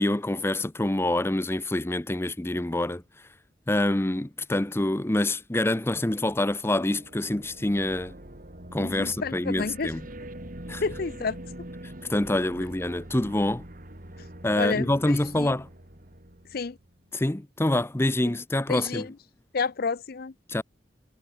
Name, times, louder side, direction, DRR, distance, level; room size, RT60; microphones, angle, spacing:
voice 1, 0.0-3.0 3.7-8.1 8.7-10.1 10.7-10.8 12.1-13.6 14.4-15.7 17.1-19.1 20.5-20.6, left 1 dB, 15° left, 0.6 m, -26 dB
sound 1, 6.8-17.0, right 1 dB, 45° right, 3.3 m, -44 dB
voice 2, 8.8-9.9 10.8-11.4 14.6-15.5 16.5-16.8 18.7-19.1 19.5-20.3, left 4 dB, 55° left, 0.6 m, -30 dB
head